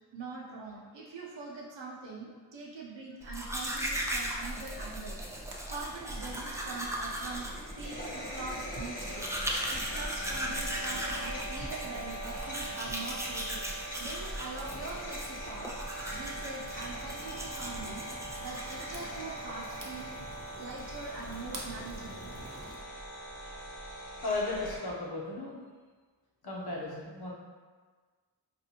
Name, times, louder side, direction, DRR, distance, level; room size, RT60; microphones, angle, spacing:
voice 1, 0.1-5.2 5.7-7.5 7.8-9.3 9.7-20.1 20.5-22.3, right 3 dB, 75° right, -5 dB, 0.9 m, -43 dB
Domestic sounds home sounds, 3.2-19.3, right 1 dB, 5° right, 0.5 m, -38 dB
sound 1, 3.9-22.8, right 1 dB, 50° right, 0.8 m, -51 dB
sound 2, 5.8-24.8, right 1 dB, 20° left, 1.0 m, -42 dB
voice 2, 24.2-25.6 26.4-27.3, left 2 dB, 60° left, -4 dB, 1.0 m, -35 dB
4.1 x 2.5 x 2.9 m, 1.4 s
cardioid pair, 45°, 43 cm